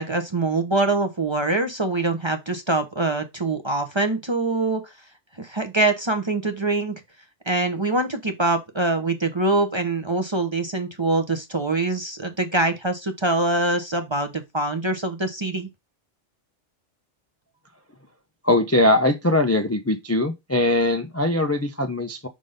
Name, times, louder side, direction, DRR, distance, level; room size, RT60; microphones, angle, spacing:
voice 1, 0.0-4.8 5.4-7.0 7.5-15.7, right 2 dB, 25° right, 0.7 m, -24 dB
voice 2, 18.4-22.3, left 1 dB, 20° left, 0.4 m, -21 dB
5.5 x 4.0 x 5.0 m
omnidirectional pair, 1.4 m